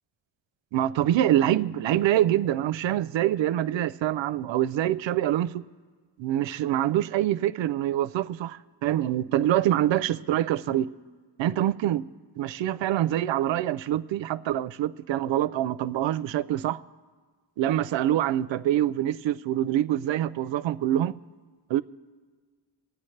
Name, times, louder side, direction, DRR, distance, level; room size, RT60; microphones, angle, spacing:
voice 1, 0.7-5.6 6.2-10.8 11.4-12.0 12.4-16.8 17.6-21.2 21.7-21.8, right 12 dB, 80° right, 0.5 m, -25 dB
27.5 x 9.6 x 3.2 m
wide cardioid pair, 110°, 44 cm